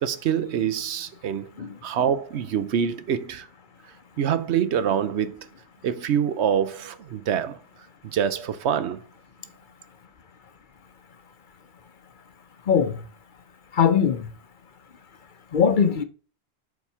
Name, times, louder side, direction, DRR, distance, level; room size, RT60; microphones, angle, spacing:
voice 1, 0.0-1.5 1.8-3.5 4.2-5.5 5.8-7.6 8.1-9.0, right 8 dB, 80° right, 1.0 m, -25 dB
voice 2, 12.7-13.0 13.7-14.3 15.5-16.0, left 7 dB, 55° left, 0.7 m, -20 dB
7.1 x 4.2 x 5.5 m
omnidirectional pair, 1.1 m